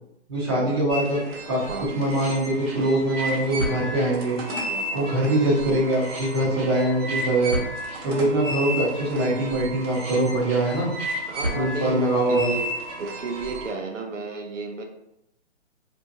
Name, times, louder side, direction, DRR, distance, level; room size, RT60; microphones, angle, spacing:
voice 1, 0.3-1.6 1.9-4.4 4.9-7.6 8.0-10.9 11.5-12.5, right 1 dB, 20° right, -8 dB, 0.9 m, -23 dB
sound 1, 0.9-13.7, right 1 dB, 55° right, 1.2 m, -32 dB
voice 2, 4.5-5.1 11.3-12.7 13.0-14.8, right 3 dB, 85° right, 2 dB, 0.7 m, -33 dB
2.7 x 2.4 x 2.6 m, 0.80 s
hypercardioid pair, 160°, 36 cm